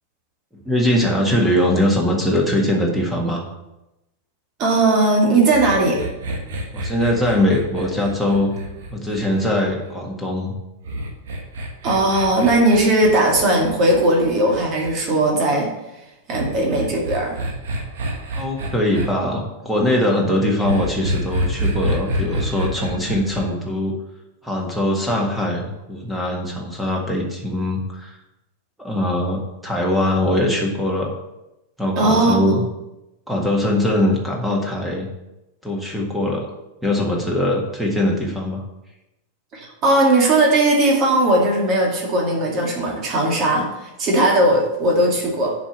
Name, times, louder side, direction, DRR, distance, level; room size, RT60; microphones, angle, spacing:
voice 1, 0.7-3.4 6.7-8.5 8.9-10.5 18.4-23.9 24.4-28.1 28.8-31.1 31.8-32.6 33.3-35.1 35.6-36.4 36.8-38.6, left 1 dB, 5° right, -1 dB, 1.8 m, -21 dB
voice 2, 4.6-6.0 11.8-15.7 16.3-17.4 32.0-32.6 39.5-45.6, right 2 dB, 35° right, -1 dB, 2.4 m, -18 dB
sound 1, 5.5-9.9 10.8-15.0 16.3-19.1 20.6-23.4, right 1 dB, 60° right, 1.5 m, -27 dB
7.2 x 5.3 x 7.3 m, 0.95 s
figure-of-eight pair, 90°, 0 cm